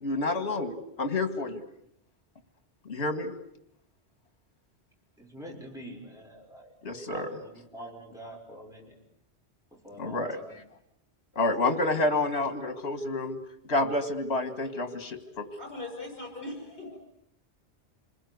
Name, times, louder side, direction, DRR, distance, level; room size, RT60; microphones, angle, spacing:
voice 1, 0.0-1.6 2.9-3.3 6.8-7.4 10.0-10.4 11.4-13.4 13.7-15.5, left 2 dB, 65° left, 9 dB, 2.3 m, -29 dB
voice 2, 5.2-6.7 7.1-9.0 9.7-10.5, right 1 dB, 5° right, 0 dB, 6.0 m, -45 dB
voice 3, 15.6-17.0, left 2 dB, 50° left, 3 dB, 7.7 m, -39 dB
27.5 x 21.0 x 9.6 m, 0.77 s
omnidirectional pair, 1.1 m